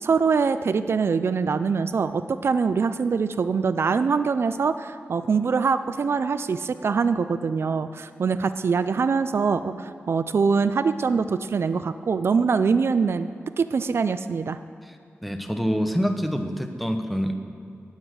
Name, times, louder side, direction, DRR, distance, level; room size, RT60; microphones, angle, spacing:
voice 1, 0.0-13.3 13.6-14.6, right 5 dB, 65° right, 11 dB, 0.4 m, -23 dB
voice 2, 15.2-17.3, equal, ahead, 6 dB, 1.0 m, -26 dB
15.5 x 8.8 x 6.3 m, 2.5 s
wide cardioid pair, 115°, 5 cm